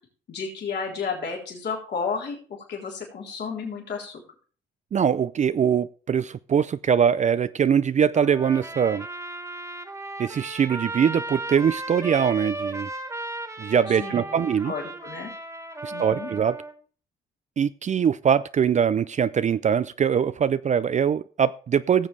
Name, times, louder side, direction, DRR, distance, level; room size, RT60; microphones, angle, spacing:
voice 1, 0.3-4.2 13.9-15.3 15.9-16.3, left 5 dB, 60° left, 3.5 m, -32 dB
voice 2, 4.9-9.1 10.2-12.9 13.6-14.7 15.8-16.6 17.6-22.1, right 7 dB, 35° right, 0.4 m, -22 dB
Trumpet, 8.1-16.7, right 2 dB, 15° right, 1.9 m, -35 dB
17.0 x 7.2 x 3.3 m
cardioid pair, 90°, 20 cm